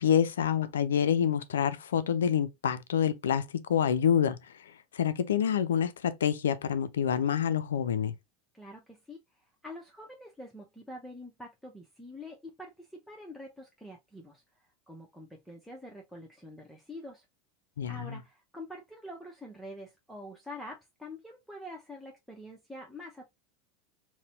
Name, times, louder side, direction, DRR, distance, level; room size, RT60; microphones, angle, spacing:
voice 1, 0.0-4.4 4.9-8.1 17.8-18.2, left 8 dB, 75° left, 0.3 m, -27 dB
voice 2, 8.5-9.2 9.6-17.2 17.9-23.3, left 1 dB, ahead, 0.8 m, -46 dB
4.0 x 2.1 x 2.6 m
figure-of-eight pair, 80°, 0 cm